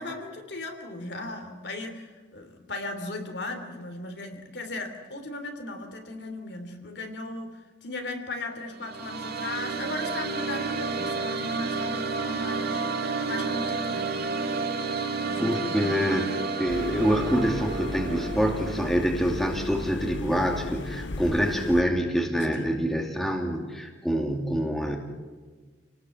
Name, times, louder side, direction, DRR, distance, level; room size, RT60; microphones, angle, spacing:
voice 1, 0.0-12.9 13.3-14.1 15.2-16.0 22.5-22.8, left 2 dB, 65° left, 5 dB, 3.3 m, -37 dB
sound 1, 8.6-18.9, right 4 dB, 55° right, 2.1 m, -30 dB
voice 2, 15.4-25.0, equal, ahead, 1 dB, 2.6 m, -26 dB
sound 2, 16.7-21.8, left 2 dB, 80° left, 1.0 m, -36 dB
29.0 x 19.0 x 7.8 m, 1.4 s
head